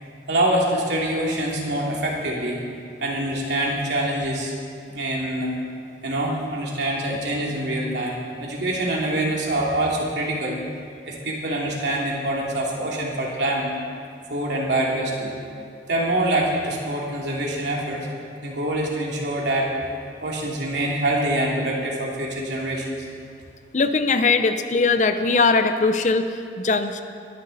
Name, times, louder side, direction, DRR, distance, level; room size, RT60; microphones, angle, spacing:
voice 1, 0.3-2.6 3.0-4.5 4.9-5.5 6.0-10.6 11.1-13.7 14.3-15.3 15.9-18.1 18.4-19.9 20.2-23.0, right 1 dB, 80° right, -3 dB, 2.8 m, -25 dB
voice 2, 23.7-27.0, left 4 dB, 45° left, 9 dB, 0.6 m, -20 dB
21.5 x 10.5 x 4.1 m, 2.4 s
head